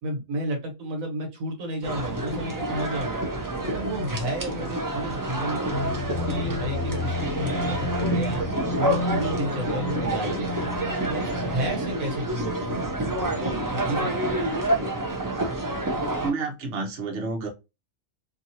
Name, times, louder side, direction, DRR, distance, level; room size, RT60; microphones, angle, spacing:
voice 1, 0.0-3.3 3.6-5.6 6.1-8.4 8.7-10.7 11.1-14.6, right 1 dB, 75° right, 2 dB, 1.3 m, -32 dB
sound 1, 1.8-16.3, right 1 dB, 30° right, 0.3 m, -28 dB
sound 2, 5.7-13.4, left 2 dB, 50° left, 0.9 m, -32 dB
voice 2, 16.2-17.5, right 4 dB, 60° right, 2 dB, 1.1 m, -29 dB
2.8 x 2.8 x 2.6 m, 0.25 s
omnidirectional pair, 1.4 m